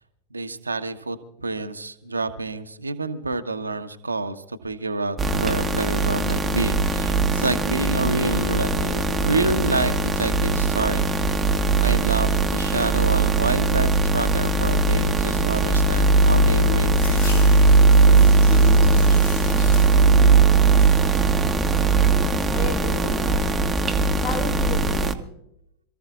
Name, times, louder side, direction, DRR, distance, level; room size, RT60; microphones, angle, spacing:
voice 1, 0.3-11.1 11.4-17.5, right 3 dB, 80° right, 8 dB, 1.0 m, -28 dB
sound 1, 5.2-25.1, right 3 dB, 10° right, 1.0 m, -19 dB
sound 2, 16.9-20.2 20.5-21.1 21.6-22.3, left 3 dB, 65° left, 7.4 m, -40 dB
voice 2, 22.5-23.5 24.2-25.3, left 5 dB, 50° left, 3 dB, 3.2 m, -34 dB
27.5 x 14.5 x 2.4 m, 0.83 s
figure-of-eight pair, 90°, 0 cm